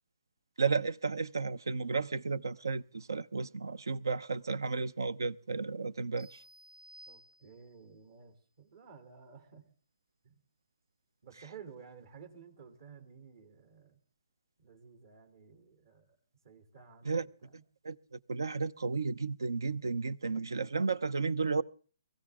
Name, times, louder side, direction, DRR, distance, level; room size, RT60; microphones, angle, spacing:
voice 1, 0.6-6.4 17.0-17.3 17.8-21.6, right 4 dB, 80° right, 0.7 m, -33 dB
sound 1, 6.2-7.9, right 1 dB, 15° right, 0.8 m, -56 dB
voice 2, 7.1-9.6 10.2-10.3 11.2-14.0 14.6-16.2 16.4-17.6, right 6 dB, 60° right, 3.1 m, -54 dB
22.0 x 15.0 x 3.6 m
figure-of-eight pair, 135°, 2 cm